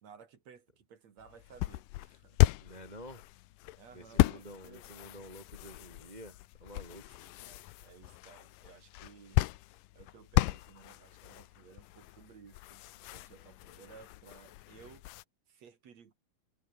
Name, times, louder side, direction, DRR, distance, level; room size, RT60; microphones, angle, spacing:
voice 1, 0.0-2.4 3.8-4.9 7.1-9.4 9.9-15.1 15.5-16.1, right 7 dB, 50° right, 3.2 m, -57 dB
sound 1, 1.2-15.2, left 18 dB, 75° left, 2.2 m, -34 dB
voice 2, 2.6-3.2 3.9-7.2, equal, 15° right, 1.8 m, -49 dB
omnidirectional pair, 4.4 m